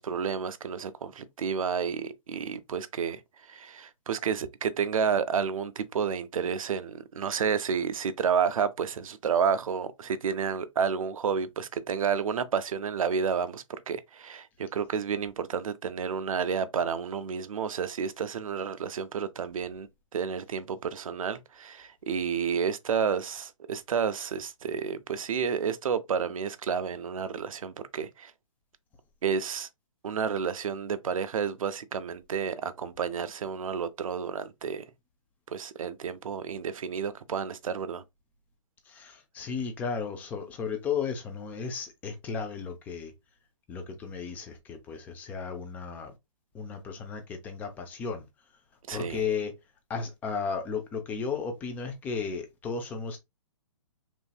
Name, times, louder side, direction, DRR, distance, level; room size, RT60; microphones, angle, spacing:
voice 1, 0.0-28.3 29.2-29.7 30.0-34.8 35.5-38.0 48.9-49.2, right 6 dB, 85° right, 0.5 m, -30 dB
voice 2, 38.9-43.1 43.7-46.1 46.5-48.2 48.9-49.5 49.9-53.2, left 5 dB, 10° left, 0.4 m, -34 dB
3.1 x 2.6 x 2.3 m
hypercardioid pair, 145°, 17 cm